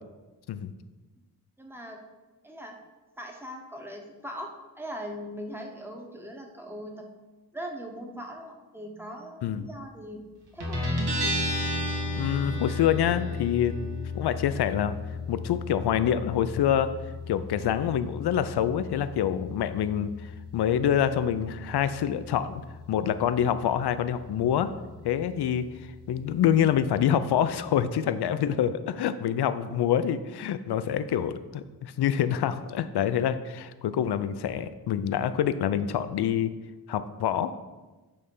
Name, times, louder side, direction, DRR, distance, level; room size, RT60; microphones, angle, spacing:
voice 1, 1.6-2.0 2.4-2.8 3.2-4.5 4.8-7.1 7.5-10.2 10.5-10.8, equal, 5° right, 1 dB, 0.8 m, -40 dB
Guitar, 10.6-27.8, left 2 dB, 85° right, 1.8 m, -35 dB
voice 2, 12.2-13.7 14.1-15.0 15.3-16.9 17.3-22.6 22.9-24.7 25.0-25.6 26.1-36.5 36.9-37.5, left 9 dB, 80° left, 12 dB, 0.5 m, -26 dB
8.7 x 3.3 x 5.4 m, 1.2 s
wide cardioid pair, 165°, 39 cm